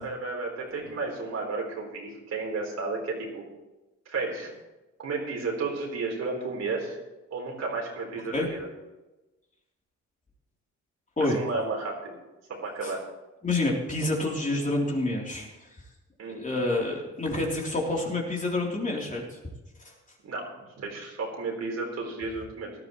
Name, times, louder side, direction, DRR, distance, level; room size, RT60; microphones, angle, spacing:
voice 1, 0.0-3.4 4.1-4.5 5.0-7.0 7.3-8.7 11.3-12.1 12.6-13.0 16.2-16.4 20.2-20.5 20.8-22.7, right 3 dB, 60° right, 0 dB, 4.0 m, -32 dB
voice 2, 13.4-15.7 16.3-19.4 19.8-19.9, left 2 dB, 25° left, -2 dB, 3.5 m, -28 dB
17.5 x 12.0 x 3.2 m, 1.1 s
cardioid pair, 90°, 30 cm